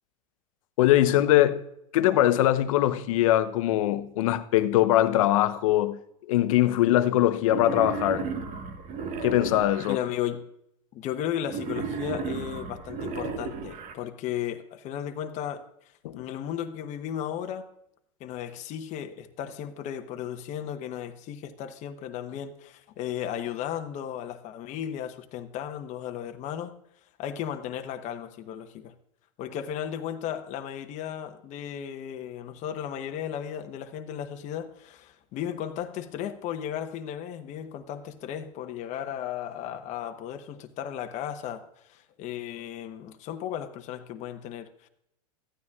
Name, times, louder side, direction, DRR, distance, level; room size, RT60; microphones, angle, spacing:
voice 1, 0.8-1.6 1.9-6.0 6.3-8.3 9.2-10.0 16.0-16.2, left 13 dB, 70° left, 0.8 m, -22 dB
Wild animals, 7.5-9.9 11.5-13.9, right 5 dB, 45° right, 1.4 m, -34 dB
voice 2, 9.9-10.4 10.9-15.6 16.1-17.7 18.2-26.7 27.2-28.9 29.4-44.9, left 10 dB, 40° left, 1.0 m, -35 dB
14.0 x 9.6 x 2.3 m
hypercardioid pair, 110°, 18 cm